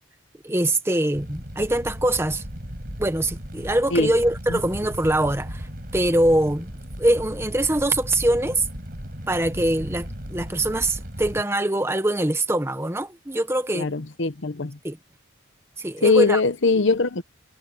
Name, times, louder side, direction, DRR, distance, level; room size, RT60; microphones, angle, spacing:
voice 1, 0.4-2.4 3.0-5.7 5.9-8.7 9.3-13.9 14.8-15.0 15.8-16.4, right 1 dB, 10° right, 1.0 m, -23 dB
Fire, 1.1-11.4, equal, 45° right, 6.4 m, -36 dB
voice 2, 13.7-14.8 16.0-17.2, left 4 dB, 75° left, 1.0 m, -21 dB
head